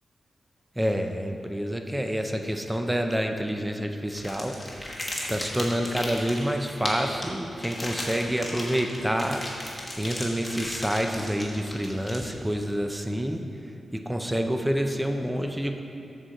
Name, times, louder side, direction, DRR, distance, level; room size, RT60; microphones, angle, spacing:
voice 1, 0.8-4.6 5.3-9.4 9.7-13.4 13.9-15.8, equal, 10° right, 4 dB, 0.5 m, -28 dB
sound 1, 4.1-12.6, left 1 dB, 15° left, 1.3 m, -36 dB
7.3 x 4.3 x 6.4 m, 2.6 s
wide cardioid pair, 105°, 0 cm